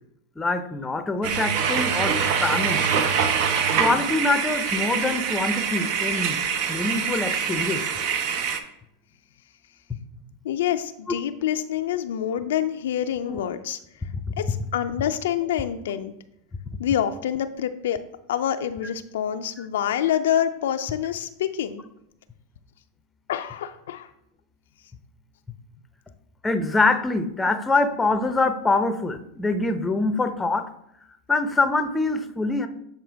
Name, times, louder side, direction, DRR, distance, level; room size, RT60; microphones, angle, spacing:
voice 1, 0.4-2.8 3.8-6.4 6.7-7.8 9.9-10.0 13.3-13.4 14.1-14.2 19.6-19.7 26.4-30.7 31.3-32.7, left 3 dB, 15° left, 8 dB, 0.6 m, -24 dB
sound 1, 1.2-8.6, right 7 dB, 55° right, 0.7 m, -24 dB
voice 2, 10.4-13.8 14.4-16.1 16.8-18.0 18.3-21.8 23.3-24.1, left 10 dB, 75° left, 8 dB, 0.4 m, -26 dB
7.8 x 4.3 x 3.4 m, 0.78 s
hypercardioid pair, 110°, 0 cm